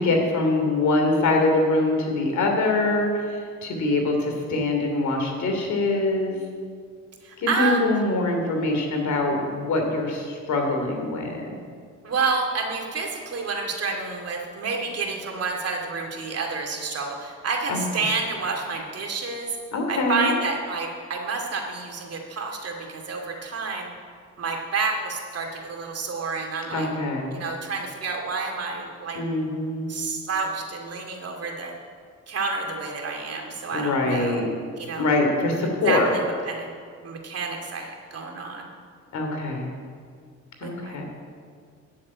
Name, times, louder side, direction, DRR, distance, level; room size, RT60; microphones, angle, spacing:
voice 1, 0.0-6.4 7.4-11.5 17.7-17.8 19.7-20.3 26.7-27.3 29.1-29.9 33.7-34.5 35.0-36.1 39.1-39.8 40.6-41.1, left 2 dB, 70° left, 3 dB, 3.1 m, -24 dB
voice 2, 7.2-7.8 12.0-19.5 19.9-23.9 24.4-26.9 27.3-29.2 29.9-31.7 32.3-34.4 34.8-35.1 35.8-36.7 37.0-38.7 40.6-41.1, right 4 dB, 55° right, 1 dB, 2.5 m, -29 dB
12.5 x 7.7 x 8.6 m, 2.1 s
cardioid pair, 90°, 30 cm